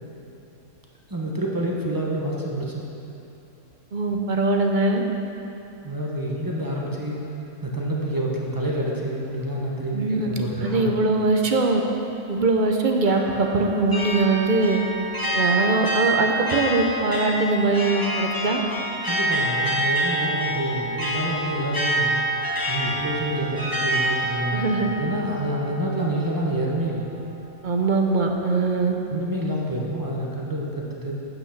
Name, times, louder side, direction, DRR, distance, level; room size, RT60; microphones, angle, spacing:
voice 1, 1.1-2.8 5.8-7.2 7.6-11.1 19.1-22.1 22.7-27.1 29.1-31.1, right 1 dB, 20° right, -3 dB, 1.0 m, -28 dB
voice 2, 3.9-5.0 9.9-10.3 10.6-11.8 12.3-14.8 15.3-18.6 24.5-24.9 27.6-28.9, right 3 dB, 50° right, 3 dB, 0.7 m, -21 dB
sound 1, 13.0-26.0, right 1 dB, 15° left, 1.2 m, -27 dB
8.9 x 6.1 x 5.8 m, 2.9 s
omnidirectional pair, 1.3 m